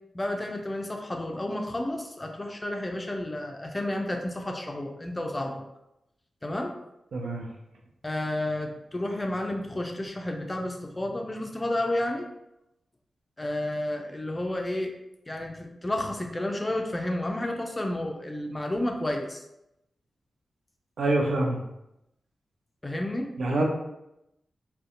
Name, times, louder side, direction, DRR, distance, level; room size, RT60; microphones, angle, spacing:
voice 1, 0.1-5.6 6.4-6.7 8.0-12.3 13.4-14.9 15.3-19.4 22.8-23.3, left 1 dB, 25° left, 3 dB, 0.4 m, -31 dB
voice 2, 7.1-7.4 21.0-21.6 23.4-23.6, right 2 dB, 75° right, 0 dB, 0.5 m, -25 dB
2.6 x 2.1 x 2.4 m, 0.87 s
supercardioid pair, 40°, 0 cm